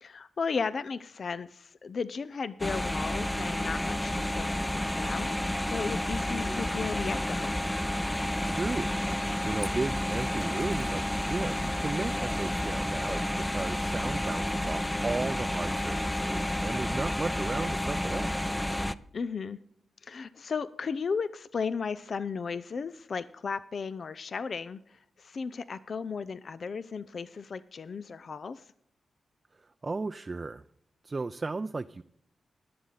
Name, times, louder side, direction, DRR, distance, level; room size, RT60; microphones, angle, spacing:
voice 1, 0.0-7.6 19.1-19.6 20.0-28.6, left 5 dB, 60° left, 15 dB, 0.5 m, -35 dB
sound 1, 2.6-18.9, left 1 dB, 10° left, 0.6 m, -30 dB
voice 2, 8.1-8.9 9.4-18.3 29.6-30.6 31.0-32.0, right 3 dB, 40° right, 9 dB, 0.5 m, -35 dB
19.5 x 7.6 x 4.0 m, 0.68 s
supercardioid pair, 45°, 0 cm